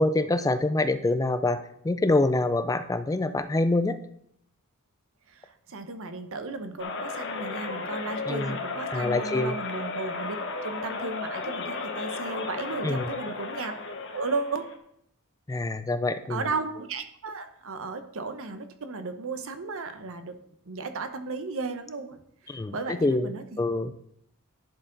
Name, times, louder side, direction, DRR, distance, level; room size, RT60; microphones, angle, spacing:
voice 1, 0.0-4.0 8.3-8.5 8.9-9.6 12.8-13.1 15.5-16.5 22.5-23.9, left 2 dB, 15° left, 11 dB, 0.4 m, -26 dB
voice 2, 5.3-10.4 10.6-13.7 14.1-14.7 16.3-20.4 20.7-23.4, right 3 dB, 65° right, 9 dB, 0.9 m, -34 dB
sound 1, 6.8-14.8, left 3 dB, 55° left, 1.1 m, -34 dB
11.0 x 6.7 x 3.9 m, 0.71 s
head